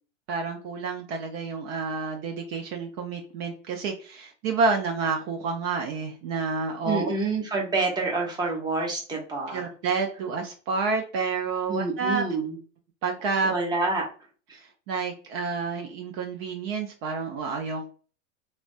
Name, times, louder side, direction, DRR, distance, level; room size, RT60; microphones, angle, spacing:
voice 1, 0.3-7.1 9.5-12.3 13.0-13.5 14.5-17.9, right 4 dB, 50° right, 3 dB, 0.6 m, -29 dB
voice 2, 6.8-9.7 11.7-12.6 13.4-14.1, right 3 dB, 10° right, -1 dB, 0.8 m, -27 dB
3.2 x 2.1 x 2.5 m, 0.40 s
hypercardioid pair, 110°, 38 cm